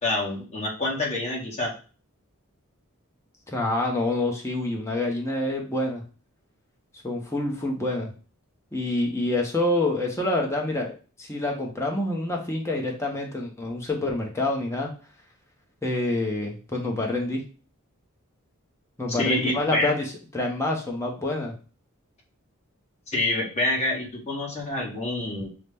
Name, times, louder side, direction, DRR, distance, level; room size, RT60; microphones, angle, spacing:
voice 1, 0.0-1.7 19.1-19.9 23.1-25.5, left 2 dB, 30° left, -2 dB, 1.3 m, -27 dB
voice 2, 3.5-6.0 7.0-8.1 8.7-10.9 11.2-14.9 15.8-17.4 19.0-21.5, left 2 dB, 15° left, 0 dB, 0.8 m, -27 dB
5.6 x 2.1 x 3.4 m, 0.37 s
head